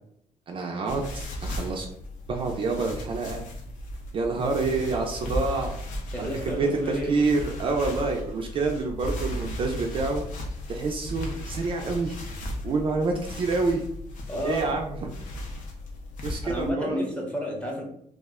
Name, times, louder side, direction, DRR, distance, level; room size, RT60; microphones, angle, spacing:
voice 1, 0.5-1.9 2.3-3.4 4.1-5.8 6.2-10.2 10.7-12.1 12.6-13.8 14.4-15.0 16.2-17.0, right 3 dB, 40° right, 1 dB, 0.4 m, -27 dB
sound 1, 0.9-16.7, left 1 dB, 75° left, 0.6 m, -36 dB
voice 2, 6.1-7.2 14.3-14.8 16.2-17.8, equal, 10° left, -1 dB, 0.7 m, -31 dB
2.3 x 2.1 x 3.5 m, 0.70 s
cardioid pair, 140°, 14 cm